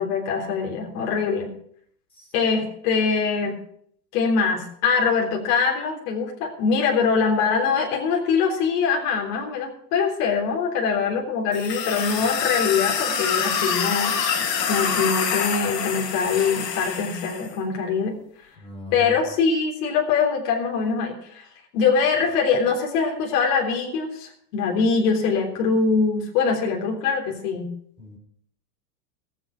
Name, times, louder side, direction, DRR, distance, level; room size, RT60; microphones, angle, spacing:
voice 1, 0.0-1.5 2.3-3.6 4.1-18.2 18.9-21.5 21.7-27.7, left 5 dB, 50° left, 1 dB, 3.7 m, -23 dB
sound 1, 11.5-17.5, left 7 dB, 75° left, 3.2 m, -26 dB
voice 2, 18.6-19.2 28.0-28.2, left 1 dB, 10° left, 1 dB, 4.4 m, -40 dB
21.0 x 7.9 x 5.0 m, 0.63 s
supercardioid pair, 145°, 49 cm